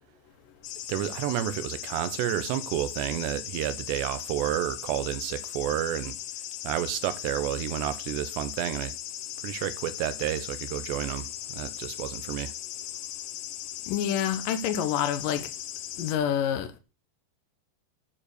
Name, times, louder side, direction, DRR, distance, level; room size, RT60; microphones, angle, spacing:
sound 1, 0.6-16.2, left 13 dB, 85° left, 2.0 m, -38 dB
voice 1, 0.9-6.2 6.6-8.9 9.4-12.5, right 12 dB, 75° right, 3.0 m, -30 dB
voice 2, 13.9-15.5 16.0-16.8, left 9 dB, 65° left, 2.3 m, -27 dB
10.0 x 7.1 x 6.7 m
omnidirectional pair, 5.2 m